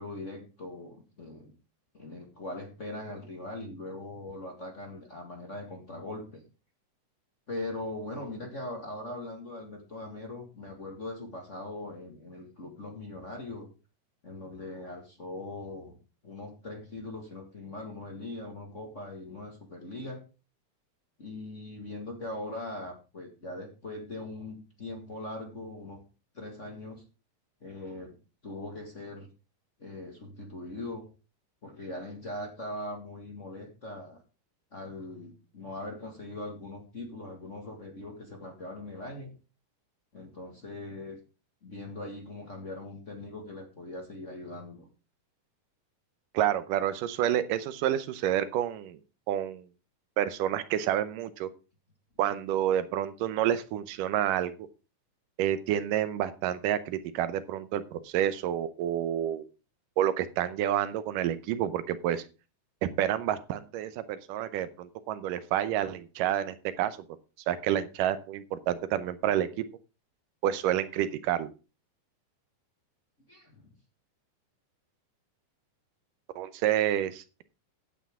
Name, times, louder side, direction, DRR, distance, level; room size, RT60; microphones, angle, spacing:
voice 1, 0.0-1.5 1.9-6.4 7.5-13.7 14.2-16.0 16.2-20.2 21.2-26.0 26.3-27.0 27.6-28.2 28.4-29.3 29.8-31.1 31.6-34.2 34.7-39.3 40.1-41.2 41.6-44.9 73.3-73.7, left 2 dB, 30° left, 1 dB, 1.6 m, -41 dB
voice 2, 46.3-49.0 49.3-49.7 50.2-51.5 52.2-54.7 55.4-59.5 60.0-62.2 63.0-67.0 67.5-69.6 70.4-71.5 76.4-77.4, right 11 dB, 85° right, 14 dB, 2.4 m, -29 dB
15.0 x 8.4 x 3.6 m, 0.33 s
omnidirectional pair, 3.7 m